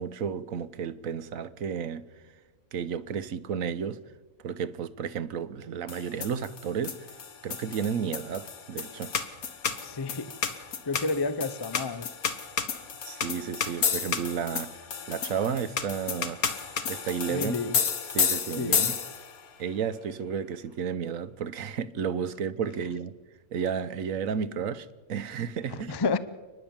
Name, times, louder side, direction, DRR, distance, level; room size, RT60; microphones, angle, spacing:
voice 1, 0.0-2.0 2.7-4.0 4.4-7.1 7.4-9.1 13.0-16.4 16.9-17.5 18.1-18.9 19.6-23.1 23.5-25.9, right 7 dB, 70° right, 1.2 m, -32 dB
sound 1, 5.9-19.4, left 6 dB, 75° left, 1.8 m, -31 dB
voice 2, 9.8-10.4 10.8-12.1 17.3-17.9 18.5-19.0 25.7-26.2, left 4 dB, 30° left, 0.4 m, -31 dB
29.5 x 10.5 x 8.7 m
omnidirectional pair, 1.5 m